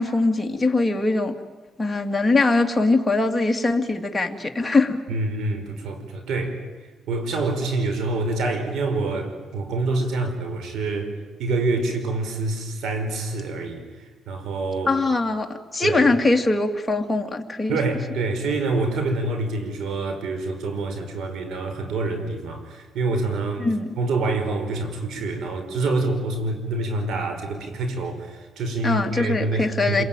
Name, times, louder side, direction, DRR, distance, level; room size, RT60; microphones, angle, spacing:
voice 1, 0.0-1.3 1.8-5.0 14.9-17.8 23.6-23.9 28.8-30.0, left 3 dB, 15° left, 3 dB, 2.6 m, -22 dB
voice 2, 5.1-11.1 11.4-14.9 15.8-16.1 17.7-23.7 24.0-30.0, right 2 dB, 75° right, 7 dB, 5.0 m, -26 dB
27.5 x 22.0 x 9.2 m, 1.3 s
cardioid pair, 90°, 0 cm